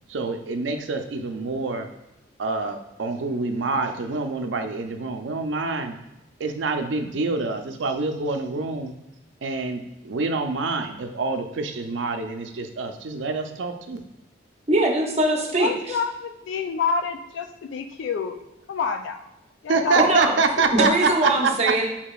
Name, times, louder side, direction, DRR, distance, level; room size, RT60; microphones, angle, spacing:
voice 1, 0.1-1.9 2.4-6.0 6.4-8.9 9.4-14.0 19.7-21.7, right 3 dB, 80° right, 6 dB, 0.5 m, -26 dB
voice 2, 14.7-16.0 19.9-20.3 20.7-21.9, right 2 dB, 35° right, 1 dB, 0.7 m, -21 dB
voice 3, 15.6-18.4 18.7-19.3 19.6-21.0, left 5 dB, 75° left, 7 dB, 0.3 m, -28 dB
6.6 x 2.8 x 2.3 m, 0.96 s
head